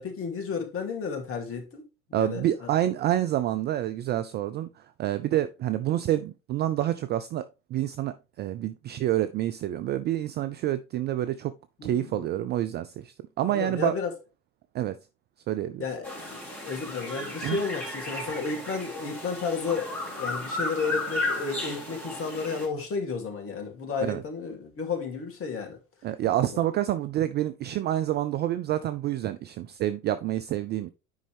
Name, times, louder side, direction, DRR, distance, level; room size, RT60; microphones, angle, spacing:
voice 1, 0.0-1.8 2.1-2.7 11.8-12.3 13.5-14.1 15.8-25.8 26.4-26.6, left 5 dB, 30° left, 2.8 m, -32 dB
voice 2, 2.1-4.7 5.0-7.4 7.7-11.5 11.8-13.9 14.7-15.0 15.5-15.8 17.4-17.6 24.0-24.2 26.0-30.9, right 12 dB, 25° right, 0.3 m, -28 dB
sound 1, 16.0-22.7, left 2 dB, 5° left, 4.0 m, -34 dB
9.5 x 5.3 x 3.4 m
figure-of-eight pair, 75°, 42 cm